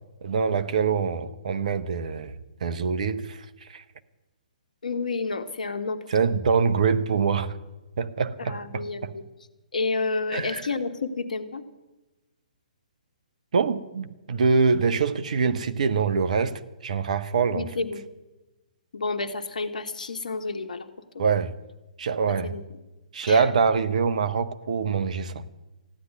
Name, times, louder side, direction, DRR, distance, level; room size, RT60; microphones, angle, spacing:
voice 1, 0.2-2.3 2.6-3.4 3.7-3.8 6.1-7.5 8.0-9.1 10.3-10.6 13.5-17.7 21.2-21.5 22.0-22.5 23.1-25.4, right 5 dB, 55° right, 1.0 m, -24 dB
voice 2, 4.8-6.3 8.4-9.2 9.7-11.6 17.5-18.0 18.9-20.9 21.1-21.2 22.4-22.6 23.3-23.4, left 3 dB, 65° left, 1.4 m, -30 dB
14.5 x 9.7 x 9.2 m
figure-of-eight pair, 130°, 4 cm